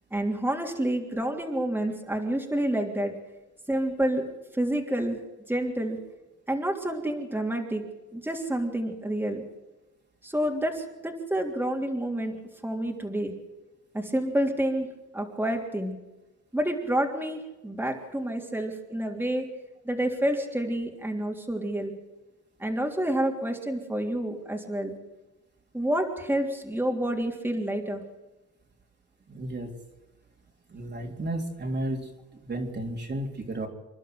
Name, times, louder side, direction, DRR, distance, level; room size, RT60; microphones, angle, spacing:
voice 1, 0.1-3.1 3.7-5.2 5.5-6.0 6.5-7.8 8.1-9.4 10.2-12.4 12.6-13.3 13.9-14.9 15.1-16.0 16.5-19.5 19.8-21.9 22.6-24.9 25.7-28.0, right 1 dB, 5° right, 1 dB, 3.3 m, -28 dB
voice 2, 29.3-29.7 30.7-32.1 32.4-33.7, right 1 dB, 35° right, 1 dB, 3.6 m, -32 dB
28.5 x 11.5 x 7.9 m, 1.0 s
cardioid pair, 90°, 30 cm